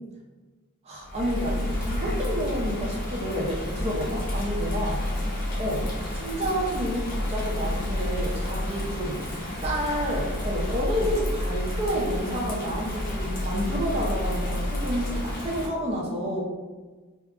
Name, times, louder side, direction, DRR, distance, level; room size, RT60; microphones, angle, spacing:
voice 1, 0.8-5.0 5.6-5.9 6.1-9.2 9.6-16.4, equal, 30° right, -3 dB, 0.4 m, -29 dB
Bird vocalization bird call bird song / Rain, 1.0-15.7, left 1 dB, 40° left, 0.6 m, -30 dB
2.6 x 2.3 x 2.3 m, 1.3 s
head